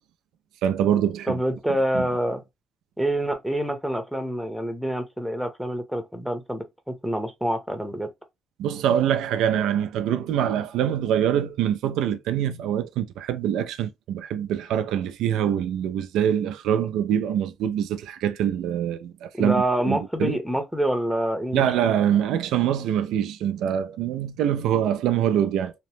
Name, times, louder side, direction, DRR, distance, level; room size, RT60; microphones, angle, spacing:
voice 1, 0.6-1.4 1.9-2.1 8.6-20.4 21.5-25.7, right 10 dB, 90° right, 0.3 m, -24 dB
voice 2, 1.3-2.4 3.0-8.1 19.4-21.7, right 1 dB, ahead, 0.7 m, -26 dB
2.9 x 2.1 x 3.1 m
cardioid pair, 90°, 0 cm